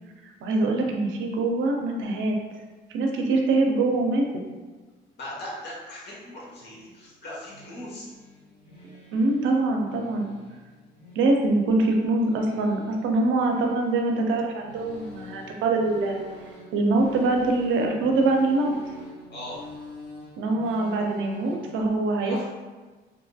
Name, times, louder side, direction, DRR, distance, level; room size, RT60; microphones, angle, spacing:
voice 1, 0.2-2.3 2.9-4.2 9.1-10.3 11.2-16.2 16.7-18.7 20.4-22.4, right 2 dB, 80° right, 2 dB, 0.5 m, -24 dB
voice 2, 5.2-8.1 19.3-19.6 22.2-22.4, left 1 dB, 60° left, -5 dB, 1.0 m, -39 dB
sound 1, 6.7-21.8, left 1 dB, 40° left, 1.3 m, -47 dB
2.7 x 2.6 x 2.2 m, 1.3 s
cardioid pair, 90°, 20 cm